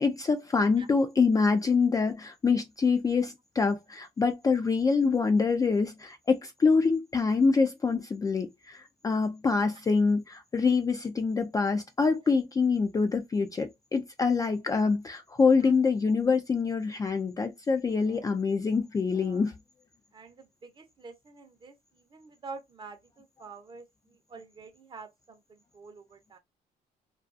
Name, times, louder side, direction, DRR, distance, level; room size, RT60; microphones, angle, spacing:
voice 1, 0.0-19.5, left 4 dB, 20° left, 0.3 m, -25 dB
voice 2, 18.0-18.3 19.1-19.5 20.1-26.4, right 4 dB, 30° right, 0.6 m, -48 dB
2.3 x 2.3 x 2.4 m
cardioid pair, 110°, 17 cm